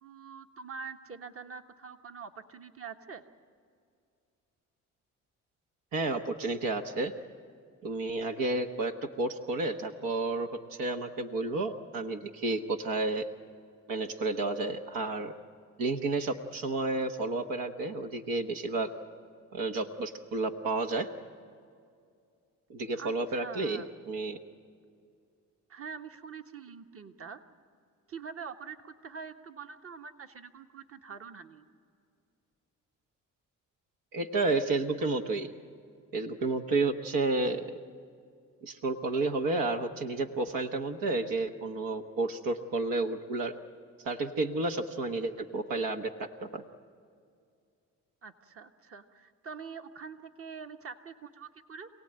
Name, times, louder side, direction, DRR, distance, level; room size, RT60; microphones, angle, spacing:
voice 1, 0.0-3.2 22.9-23.9 25.7-27.4 28.1-31.6 48.2-51.9, right 6 dB, 45° right, 7 dB, 1.4 m, -45 dB
voice 2, 5.9-7.1 7.8-13.3 13.9-15.3 15.8-18.9 19.5-21.1 22.7-24.4 34.1-35.5 36.1-37.8 38.6-43.5 44.0-46.6, right 2 dB, 85° right, 5 dB, 1.3 m, -31 dB
27.0 x 17.5 x 8.9 m, 2.3 s
cardioid pair, 75°, 33 cm